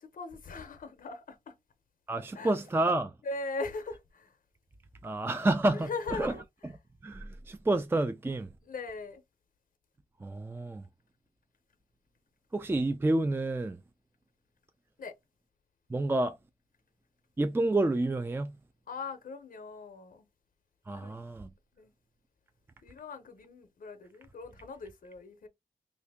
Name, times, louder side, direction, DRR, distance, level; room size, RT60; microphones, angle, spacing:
voice 1, 0.0-1.5 2.3-2.5 3.2-4.4 5.7-6.4 8.6-9.2 15.0-15.1 18.9-20.3 20.9-21.2 21.7-21.9 22.8-25.5, left 3 dB, 85° left, 0.6 m, -40 dB
voice 2, 2.1-3.1 5.0-6.3 7.0-8.5 10.2-10.8 12.5-13.8 15.9-16.4 17.4-18.6 20.9-21.5, right 2 dB, 15° right, 0.3 m, -29 dB
2.8 x 2.6 x 3.4 m
cardioid pair, 70°, 14 cm